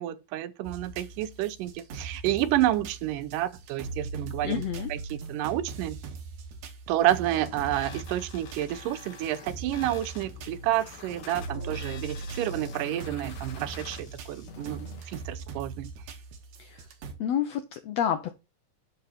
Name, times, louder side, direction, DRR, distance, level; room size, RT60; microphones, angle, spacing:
voice 1, 0.0-4.6 4.9-6.0 6.9-15.9, right 13 dB, 85° right, 2.3 m, -29 dB
sound 1, 0.6-17.1, right 4 dB, 65° right, 2.4 m, -40 dB
voice 2, 4.4-4.9 16.6-16.9 17.2-18.3, left 9 dB, 90° left, 1.4 m, -29 dB
sound 2, 7.2-15.2, left 6 dB, 60° left, 2.1 m, -46 dB
11.0 x 3.9 x 4.2 m
omnidirectional pair, 3.7 m